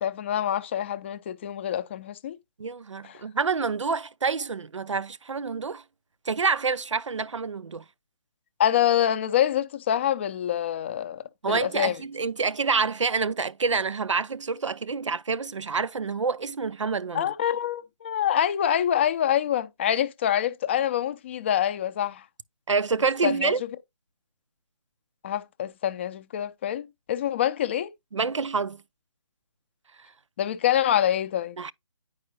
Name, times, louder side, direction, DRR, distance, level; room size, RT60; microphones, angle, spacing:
voice 1, 0.0-2.4 3.0-3.2 8.6-11.2 11.5-11.9 17.1-22.2 23.2-23.5 25.2-27.9 30.4-31.6, left 10 dB, 25° left, 0.5 m, -26 dB
voice 2, 2.6-5.8 6.3-7.8 11.4-17.3 22.7-23.6 28.1-28.8 31.6-31.7, right 5 dB, 85° right, 0.4 m, -27 dB
9.7 x 4.8 x 2.8 m
figure-of-eight pair, 145°, 15 cm